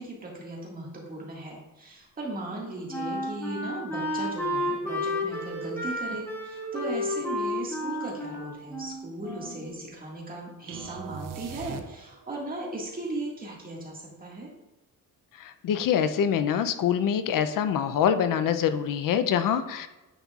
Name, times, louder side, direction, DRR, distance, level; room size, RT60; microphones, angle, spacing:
voice 1, 0.0-14.5, right 2 dB, 25° right, -3 dB, 1.7 m, -37 dB
Wind instrument woodwind instrument, 2.5-9.7, left 1 dB, 5° left, 1.9 m, -32 dB
sound 1, 10.7-12.4, right 8 dB, 75° right, 0.6 m, -40 dB
voice 2, 15.4-19.9, left 8 dB, 75° left, 10 dB, 0.5 m, -25 dB
9.6 x 5.5 x 2.4 m, 1.1 s
cardioid pair, 135°, 33 cm